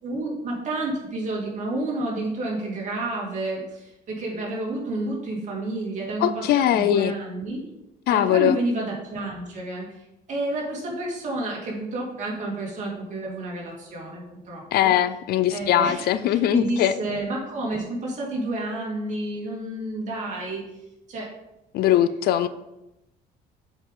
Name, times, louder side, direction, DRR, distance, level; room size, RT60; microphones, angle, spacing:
voice 1, 0.0-7.6 8.1-9.9 10.3-14.9 15.5-20.7 21.1-21.3, right 2 dB, 45° right, -3 dB, 2.4 m, -30 dB
voice 2, 6.2-7.1 8.1-8.6 14.7-16.9 21.7-22.5, left 11 dB, 65° left, 13 dB, 0.4 m, -21 dB
7.7 x 4.9 x 3.8 m, 0.91 s
cardioid pair, 150°, 17 cm